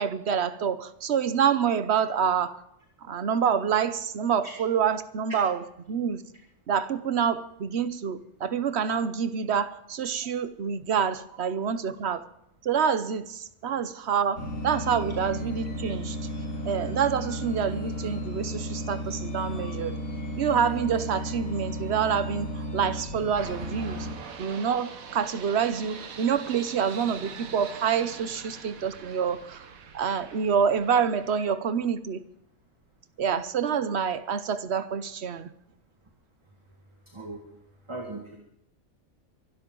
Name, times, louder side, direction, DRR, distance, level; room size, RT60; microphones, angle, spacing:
voice 1, 0.0-2.6 3.0-6.2 6.7-12.2 12.6-16.2 16.6-20.0 20.4-24.1 24.4-29.7 29.9-32.2 33.2-35.5, right 7 dB, 55° right, 13 dB, 1.0 m, -27 dB
sound 1, 14.4-24.1, equal, 70° left, 7.3 m, -34 dB
sound 2, 23.4-31.4, right 6 dB, 75° right, 1.6 m, -43 dB
voice 2, 37.1-37.4 37.9-38.4, right 2 dB, 20° right, 0 dB, 1.9 m, -38 dB
23.5 x 12.5 x 3.8 m, 0.76 s
omnidirectional pair, 1.5 m